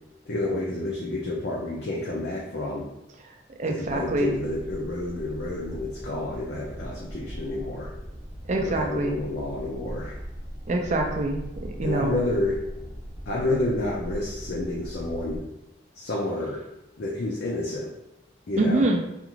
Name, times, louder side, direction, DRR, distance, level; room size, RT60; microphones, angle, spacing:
voice 1, 0.3-2.9 3.6-7.9 8.6-10.2 11.8-12.6 13.3-15.4 15.9-16.6 17.0-17.9 18.5-18.8, left 2 dB, 55° left, -4 dB, 0.5 m, -29 dB
voice 2, 3.6-4.3 8.5-9.2 10.7-12.2 18.6-19.0, right 2 dB, 40° right, 2 dB, 0.4 m, -25 dB
sound 1, 3.8-15.4, equal, 20° right, 0.9 m, -39 dB
2.5 x 2.4 x 2.9 m, 0.91 s
head